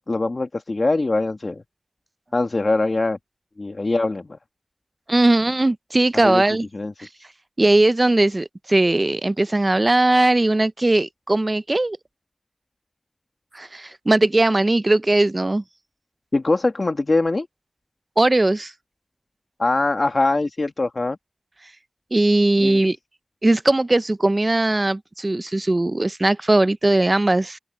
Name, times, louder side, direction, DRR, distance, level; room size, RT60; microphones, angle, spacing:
voice 1, 0.1-1.6 2.3-3.2 3.6-4.3 6.2-6.4 6.7-6.9 16.3-17.5 19.6-21.2 22.6-22.8, left 2 dB, 75° left, 1.8 m, -22 dB
voice 2, 5.1-6.7 7.0-7.1 7.6-12.0 13.5-15.6 18.2-18.7 22.1-23.0 23.4-27.6, right 2 dB, 50° right, 0.5 m, -19 dB
wide cardioid pair, 50°, 0 cm